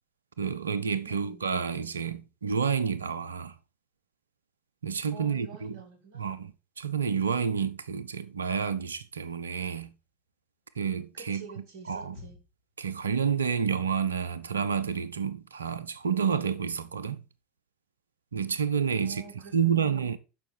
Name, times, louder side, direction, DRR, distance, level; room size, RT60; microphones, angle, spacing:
voice 1, 0.4-3.5 4.8-5.8 6.1-6.5 6.8-9.9 10.8-11.4 11.9-12.2 12.8-17.2 18.3-19.2 19.5-20.2, right 7 dB, 80° right, 0.5 m, -29 dB
voice 2, 1.0-1.5 5.1-6.4 11.1-12.4 19.0-20.1, right 4 dB, 60° right, 1.9 m, -48 dB
sound 1, 8.7-10.1 11.6-12.8 13.0-13.7 14.1-14.4 14.8-15.1 15.6-15.9 16.2-16.6, left 3 dB, 55° left, 2.8 m, -55 dB
7.1 x 5.7 x 4.2 m
figure-of-eight pair, 75°, 0 cm